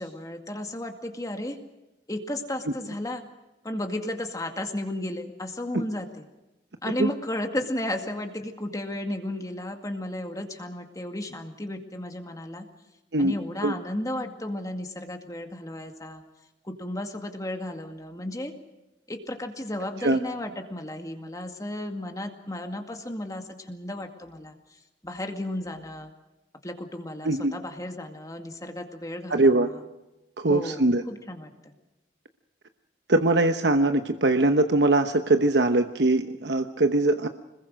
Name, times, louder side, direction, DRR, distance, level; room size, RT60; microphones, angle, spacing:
voice 1, 0.0-1.6 2.1-3.2 3.6-6.2 6.8-12.6 13.2-16.2 16.6-18.5 19.1-24.5 25.0-26.1 26.6-29.7 30.5-31.7, left 1 dB, 20° left, 5 dB, 2.1 m, -34 dB
voice 2, 29.3-29.7 30.4-31.0 33.1-37.3, right 2 dB, 75° right, 7 dB, 1.0 m, -22 dB
26.0 x 21.0 x 6.4 m, 1.0 s
head